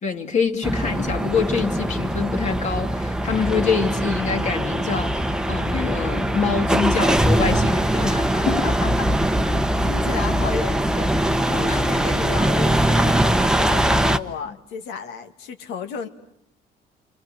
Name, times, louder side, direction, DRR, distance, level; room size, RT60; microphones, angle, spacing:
voice 1, 0.0-8.7 11.7-11.8, left 5 dB, 45° left, 2.6 m, -25 dB
sound 1, 0.6-14.2, right 1 dB, 5° right, 1.0 m, -21 dB
voice 2, 8.5-11.1 11.5-16.1, left 6 dB, 90° left, 2.2 m, -33 dB
30.0 x 25.0 x 7.5 m
cardioid pair, 110°, 17 cm